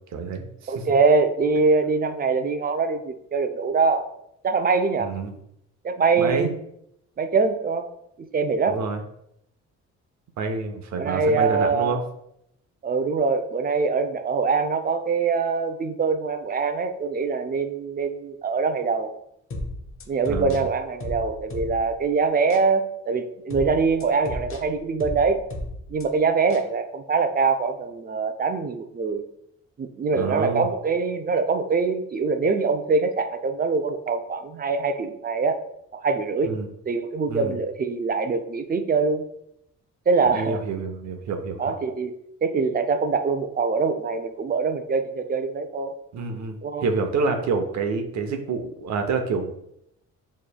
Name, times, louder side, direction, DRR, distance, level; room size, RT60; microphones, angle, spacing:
voice 1, 0.1-0.9 5.0-5.3 6.1-6.6 8.7-9.0 10.4-12.0 20.3-20.6 30.1-30.7 36.4-36.7 37.3-37.6 40.3-41.7 46.1-49.5, right 4 dB, 65° right, 6 dB, 0.8 m, -28 dB
voice 2, 0.7-4.1 4.4-5.1 5.8-6.5 7.2-7.9 8.2-8.8 11.0-12.0 12.8-19.1 20.1-25.4 25.9-29.2 29.8-35.6 35.9-36.5 36.8-39.2 40.1-40.6 41.6-42.1 42.4-45.9 46.6-46.9, right 4 dB, 30° right, 8 dB, 0.5 m, -23 dB
sound 1, 19.5-22.0 22.5-22.7 23.5-26.1 26.5-26.7, left 1 dB, 45° left, 0.8 m, -34 dB
6.7 x 3.1 x 2.2 m, 0.77 s
cardioid pair, 90°, 30 cm